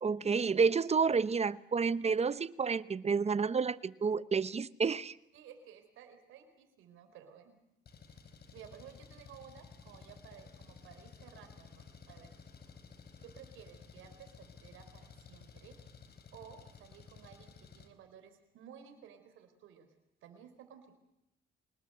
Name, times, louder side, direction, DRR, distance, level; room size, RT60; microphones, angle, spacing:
voice 1, 0.0-5.1, right 5 dB, 30° right, 17 dB, 1.0 m, -30 dB
voice 2, 5.3-7.6 8.1-8.2 8.5-12.3 13.2-15.7 16.3-19.9 20.2-21.0, right 8 dB, 90° right, 7 dB, 4.1 m, -55 dB
Engine, 7.9-17.9, left 5 dB, 55° left, 4.0 m, -55 dB
25.5 x 20.0 x 7.8 m, 0.85 s
cardioid pair, 90°, 20 cm